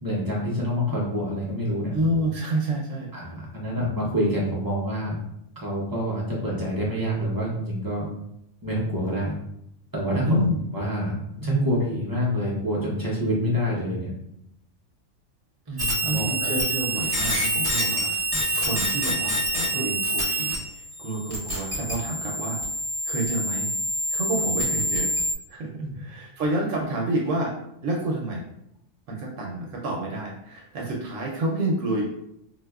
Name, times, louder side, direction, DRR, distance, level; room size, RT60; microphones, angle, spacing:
voice 1, 0.0-2.0 3.1-5.2 5.6-8.1 8.6-9.4 9.9-10.4 10.7-14.1 15.7-16.5 18.3-18.4 25.8-26.0, equal, 35° right, -6 dB, 0.3 m, -27 dB
voice 2, 1.9-3.1 10.2-10.6 15.7-22.6 23.0-23.7 24.1-25.2 25.5-27.6 27.8-28.4 29.1-32.0, right 1 dB, 75° right, -1 dB, 0.9 m, -29 dB
sound 1, 15.8-20.5 20.8-25.3, right 1 dB, 20° right, 0.8 m, -26 dB
4.3 x 2.1 x 2.3 m, 0.78 s
omnidirectional pair, 1.4 m